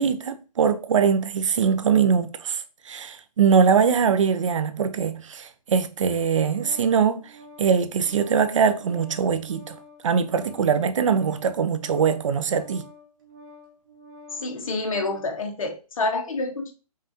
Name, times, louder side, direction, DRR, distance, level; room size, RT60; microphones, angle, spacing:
voice 1, 0.0-7.2 7.6-9.8 10.0-12.8, right 6 dB, 50° right, 0.5 m, -22 dB
Organ, 6.0-15.4, left 1 dB, 30° right, 0.9 m, -49 dB
voice 2, 14.3-16.7, left 3 dB, 60° left, 1.0 m, -28 dB
5.5 x 2.5 x 2.8 m
hypercardioid pair, 155°, 20 cm